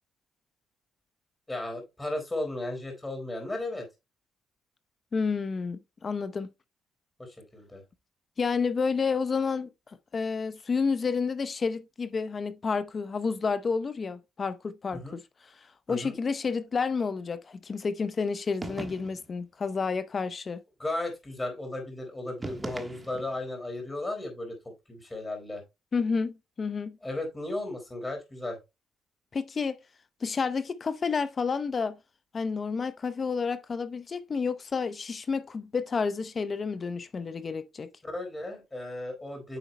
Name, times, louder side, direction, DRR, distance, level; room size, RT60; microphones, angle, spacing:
voice 1, 1.5-3.9 7.2-7.8 14.9-15.2 15.9-16.2 20.8-25.6 27.0-28.6 38.0-39.6, left 2 dB, 15° left, 4.0 m, -35 dB
voice 2, 5.1-6.5 8.4-15.2 15.9-20.6 25.9-27.0 29.3-29.8 30.2-32.0 32.3-37.9, left 5 dB, 40° left, 0.7 m, -30 dB
sound 1, 18.6-19.4 22.4-23.4, right 2 dB, 20° right, 1.4 m, -39 dB
9.4 x 7.0 x 2.2 m
cardioid pair, 90°, 0 cm